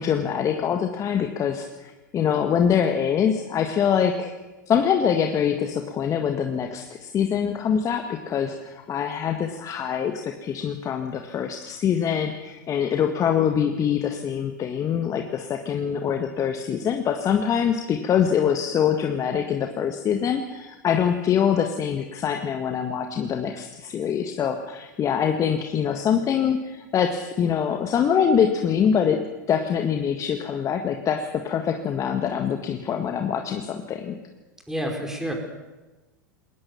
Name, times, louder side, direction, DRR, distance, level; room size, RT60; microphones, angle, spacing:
voice 1, 0.0-4.3 4.7-34.2, left 8 dB, 30° left, 5 dB, 1.7 m, -24 dB
voice 2, 34.7-35.3, equal, 5° right, 2 dB, 5.2 m, -28 dB
21.5 x 18.5 x 7.1 m, 1.1 s
hypercardioid pair, 95°, 10 cm